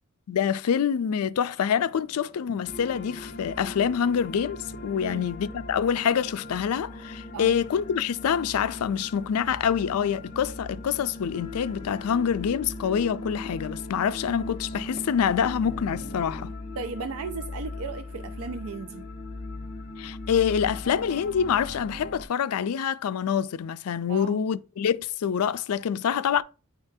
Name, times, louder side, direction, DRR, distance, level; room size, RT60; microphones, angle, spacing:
voice 1, 0.3-16.5 20.0-26.4, left 8 dB, 75° left, 0.4 m, -26 dB
sound 1, 1.5-16.5, left 1 dB, 25° left, 0.8 m, -52 dB
sound 2, 2.6-22.2, left 2 dB, 50° left, 1.2 m, -39 dB
voice 2, 5.0-5.3 7.3-7.6 16.8-19.1 24.1-24.4, right 4 dB, 70° right, 0.4 m, -35 dB
9.4 x 3.8 x 2.7 m
head